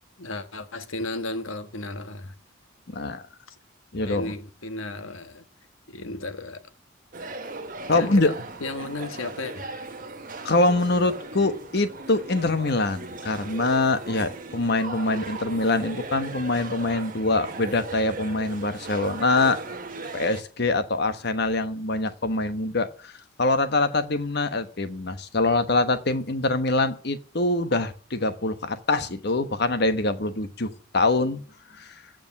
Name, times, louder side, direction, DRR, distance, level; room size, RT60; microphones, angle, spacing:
voice 1, 0.2-2.3 3.5-3.6 4.0-5.4 5.9-6.6 7.9-9.6, left 2 dB, 75° left, 1.4 m, -34 dB
voice 2, 2.9-3.2 3.9-4.3 7.9-8.3 10.4-19.6 20.1-23.1 23.4-31.4 31.8-31.9, left 2 dB, 50° left, 1.2 m, -24 dB
sound 1, 7.1-20.4, right 3 dB, 40° right, 1.6 m, -38 dB
14.5 x 5.3 x 9.6 m
head